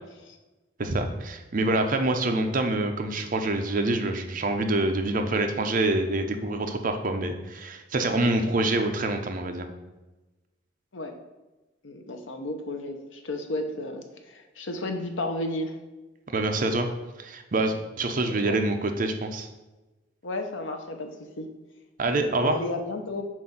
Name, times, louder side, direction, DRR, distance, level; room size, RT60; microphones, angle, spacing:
voice 1, 0.8-9.7 16.3-16.9 17.2-19.5 22.0-22.5, right 2 dB, 45° right, 5 dB, 0.6 m, -26 dB
voice 2, 11.8-15.7 18.2-18.8 20.2-21.1 21.4-21.5 22.4-23.2, left 2 dB, 80° left, 5 dB, 0.8 m, -33 dB
7.5 x 2.6 x 5.6 m, 1.1 s
head